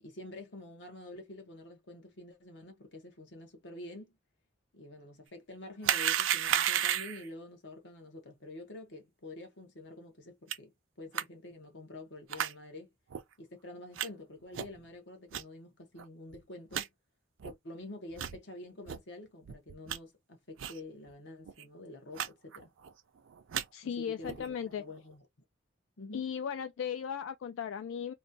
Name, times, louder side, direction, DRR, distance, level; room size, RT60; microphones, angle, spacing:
voice 1, 0.0-4.1 4.7-12.9 13.4-16.9 17.4-22.7 23.8-25.3 26.0-26.3, left 2 dB, 65° left, 1.0 m, -48 dB
sound 1, 5.8-7.3 10.5-10.6 11.1-11.2 12.3-12.5 13.1-13.2 14.0-14.1 14.5-14.8 15.3-15.4 16.0-16.1 16.3-16.4 16.7-16.9 17.4-17.5 18.1-18.4 18.9-19.0 19.4-20.0 20.6-20.8 21.1-21.2 21.4-21.6 22.1-22.3 22.5-22.9 23.3-23.6 24.2-24.5, right 10 dB, 85° right, 0.4 m, -32 dB
voice 2, 23.7-24.8 26.1-28.1, left 7 dB, 85° left, 0.3 m, -36 dB
3.1 x 2.2 x 2.6 m
head